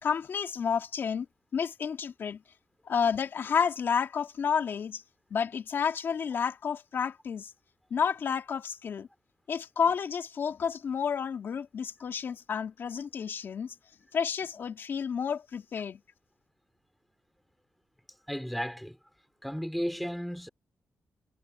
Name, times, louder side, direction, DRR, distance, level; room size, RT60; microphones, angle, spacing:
voice 1, 0.0-1.3 1.5-2.4 2.8-5.0 5.3-7.5 7.9-9.1 9.5-13.7 14.1-16.0, left 6 dB, 60° left, 2.5 m, -30 dB
voice 2, 18.3-19.0 19.4-20.5, equal, ahead, 2.8 m, -34 dB
cardioid pair, 120°, 4 cm